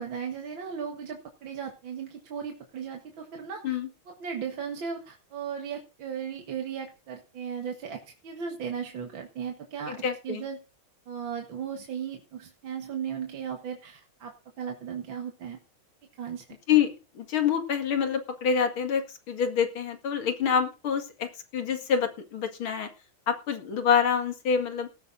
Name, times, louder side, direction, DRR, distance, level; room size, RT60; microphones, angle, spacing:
voice 1, 0.0-3.8 4.1-10.6 11.1-15.6 16.2-16.5, right 7 dB, 70° right, 3 dB, 2.3 m, -36 dB
voice 2, 9.9-10.4 16.7-19.0 19.3-22.9 23.3-24.9, left 7 dB, 80° left, 7 dB, 2.8 m, -26 dB
18.5 x 14.0 x 2.6 m, 0.31 s
omnidirectional pair, 2.2 m